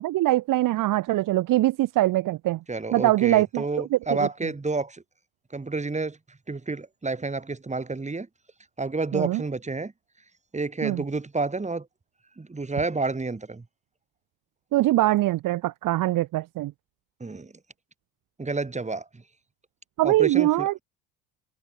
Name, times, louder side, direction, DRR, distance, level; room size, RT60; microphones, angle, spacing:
voice 1, 0.0-2.6 2.9-4.3 9.1-9.4 10.8-11.0 14.7-16.7 20.0-20.7, right 16 dB, 40° right, 1.1 m, -23 dB
voice 2, 2.7-5.0 5.5-8.3 8.8-9.9 10.5-11.9 12.4-13.6 17.2-17.5 18.4-19.2 20.0-20.7, right 3 dB, 15° right, 3.0 m, -30 dB
figure-of-eight pair, 60°, 50 cm